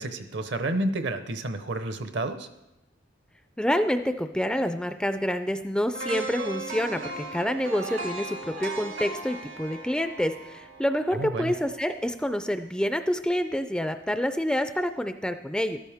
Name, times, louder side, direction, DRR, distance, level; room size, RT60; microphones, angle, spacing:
voice 1, 0.0-2.5 11.1-11.5, right 2 dB, 65° right, 9 dB, 0.9 m, -30 dB
voice 2, 3.6-15.8, equal, 5° left, 9 dB, 0.3 m, -27 dB
sound 1, 5.9-12.0 12.4-12.5, right 2 dB, 90° right, 1.8 m, -37 dB
13.5 x 12.5 x 3.5 m, 0.93 s
head